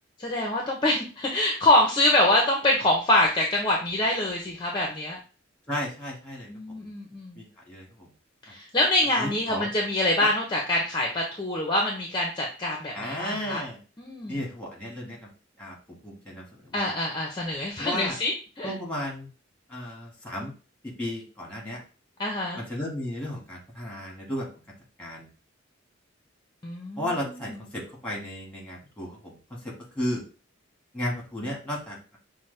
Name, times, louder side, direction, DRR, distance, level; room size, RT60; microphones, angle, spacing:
voice 1, 0.2-5.2 6.5-7.4 8.5-13.6 14.0-14.4 16.7-18.7 22.2-22.6 26.6-27.6, left 1 dB, 25° left, -1 dB, 0.6 m, -25 dB
voice 2, 5.7-6.5 6.8-6.9 7.4-8.1 9.2-9.7 10.2-10.3 12.9-13.8 14.3-15.3 15.6-16.9 17.8-18.2 18.6-19.3 19.7-20.5 20.8-21.8 22.6-24.5 25.0-25.3 27.0-29.4 29.6-30.2 30.9-32.2, left 1 dB, 5° left, -2 dB, 1.4 m, -34 dB
5.7 x 2.1 x 3.2 m, 0.36 s
head